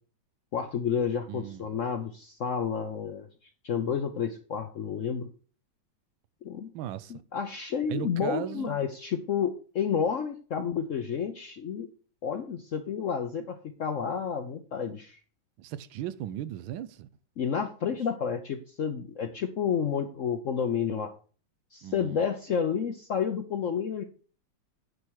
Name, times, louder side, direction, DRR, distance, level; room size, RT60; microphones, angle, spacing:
voice 1, 0.5-3.3 3.6-5.3 6.4-6.7 7.1-11.9 12.2-15.2 17.4-21.1 21.7-24.0, left 7 dB, 65° left, 0.8 m, -30 dB
voice 2, 1.3-1.7 6.7-7.1 7.9-8.8 15.6-17.1 21.8-22.2, right 11 dB, 85° right, 1.4 m, -37 dB
9.4 x 4.4 x 6.3 m
omnidirectional pair, 2.1 m